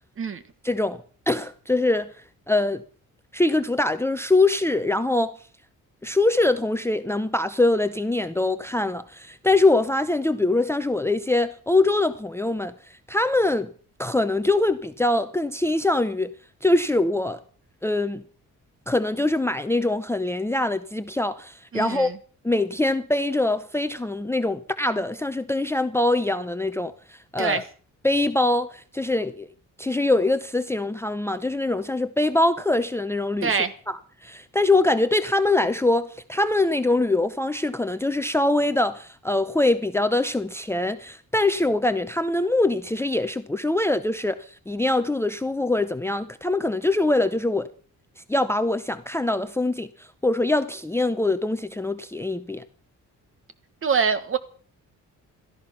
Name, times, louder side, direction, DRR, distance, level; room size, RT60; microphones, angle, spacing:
voice 1, 0.6-2.1 2.5-2.8 3.3-5.4 6.0-13.7 14.0-16.3 16.6-17.4 17.8-18.2 18.9-22.1 22.4-27.6 28.0-29.5 29.8-33.5 33.9-47.7 48.3-52.6, left 2 dB, 10° left, 0.7 m, -23 dB
voice 2, 21.7-22.2 27.4-27.6 33.4-33.7 53.8-54.4, right 5 dB, 40° right, 1.5 m, -24 dB
16.5 x 13.5 x 5.8 m
cardioid pair, 150°, 32 cm